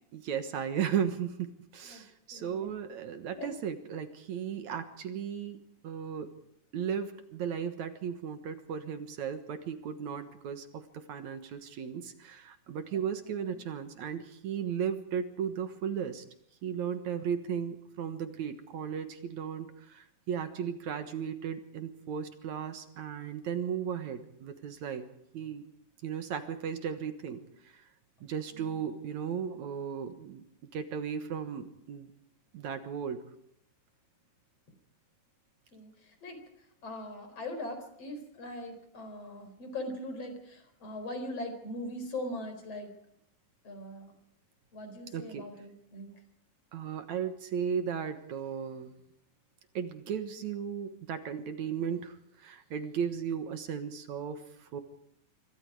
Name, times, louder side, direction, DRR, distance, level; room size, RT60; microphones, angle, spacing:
voice 1, 0.1-6.3 6.7-16.2 16.6-25.1 25.3-25.6 26.0-27.9 28.2-30.4 30.7-32.1 32.5-33.3 45.1-45.5 46.7-48.9 49.7-54.8, right 7 dB, 65° right, 9 dB, 2.6 m, -36 dB
voice 2, 2.3-2.7 3.3-3.5 12.9-13.7 28.5-28.8 35.7-36.4 36.8-42.9 43.6-44.1 44.7-46.1, left 1 dB, 50° left, 7 dB, 5.0 m, -41 dB
26.5 x 24.0 x 4.9 m, 0.71 s
omnidirectional pair, 3.7 m